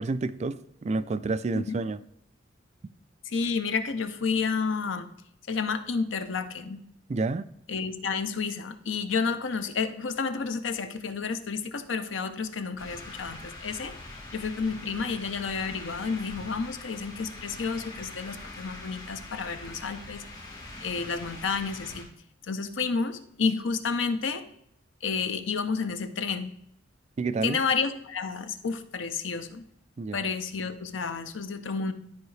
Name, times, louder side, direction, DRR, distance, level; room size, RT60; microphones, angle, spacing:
voice 1, 0.0-2.0 7.1-7.5 27.2-27.6 30.0-30.2, right 3 dB, 35° right, 0.3 m, -29 dB
voice 2, 3.3-5.1 5.5-6.8 7.7-13.9 14.3-20.2 20.8-22.1 22.4-24.4 25.0-26.5 27.4-29.6 30.1-31.9, left 5 dB, 85° left, 0.7 m, -30 dB
sound 1, 12.8-22.0, left 2 dB, 20° left, 3.1 m, -43 dB
12.5 x 4.7 x 3.3 m
head